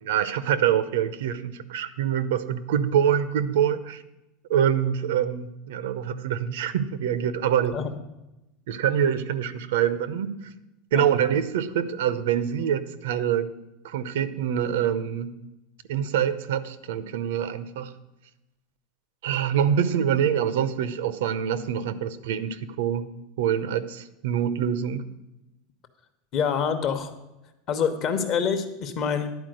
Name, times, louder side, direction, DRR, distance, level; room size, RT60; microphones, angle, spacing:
voice 1, 0.0-4.0 4.5-7.8 8.7-10.4 10.9-13.5 13.8-15.3 15.9-17.9 19.2-23.0 23.4-25.0, right 9 dB, 85° right, 14 dB, 0.6 m, -25 dB
voice 2, 26.3-27.1 27.7-29.4, left 7 dB, 30° left, 8 dB, 0.8 m, -26 dB
11.0 x 4.6 x 7.7 m, 0.96 s
supercardioid pair, 170°, 0 cm